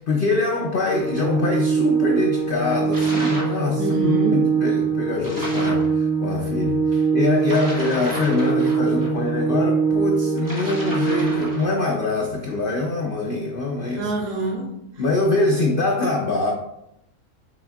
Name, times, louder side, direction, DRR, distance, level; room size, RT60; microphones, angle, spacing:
voice 1, 0.0-14.1 15.0-16.5, left 3 dB, 85° left, 0.4 m, -24 dB
Organ, 0.8-11.8, right 5 dB, 60° left, 2.3 m, -23 dB
sound 1, 2.9-3.6 5.2-5.9 7.4-9.1 10.4-11.8, equal, 15° right, 0.8 m, -32 dB
voice 2, 3.8-4.5 13.9-15.0, right 3 dB, 80° right, 1.4 m, -26 dB
6.0 x 3.5 x 2.3 m
omnidirectional pair, 1.7 m